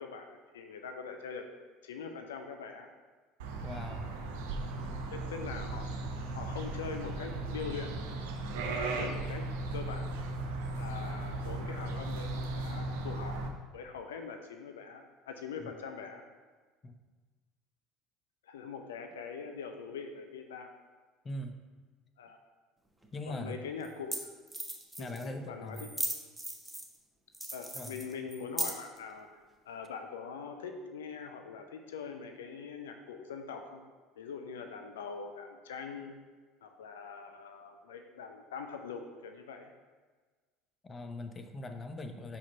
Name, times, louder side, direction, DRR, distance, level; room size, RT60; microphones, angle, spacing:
voice 1, 0.0-1.5 1.8-2.9 5.1-5.9 6.3-7.9 8.6-9.4 9.7-10.1 10.8-13.3 13.7-16.2 18.4-20.7 22.2-22.4 23.3-24.2 25.0-25.9 27.5-33.8 34.2-36.2 36.6-39.7, left 5 dB, 75° left, 5 dB, 0.5 m, -43 dB
sound 1, 3.4-13.5, right 2 dB, 70° right, 0.7 m, -37 dB
voice 2, 3.6-4.1 15.6-15.7 16.8-16.9 21.2-21.6 23.1-23.6 25.0-25.9 27.7-28.0 40.8-42.4, left 1 dB, 25° left, 6 dB, 0.7 m, -41 dB
sound 2, 23.0-23.1 23.8-23.9 24.1-24.2 24.5-25.3 25.7-27.0 27.3-29.0, right 1 dB, 5° right, 1.0 m, -37 dB
5.4 x 5.0 x 4.5 m, 1.4 s
figure-of-eight pair, 65°, 0 cm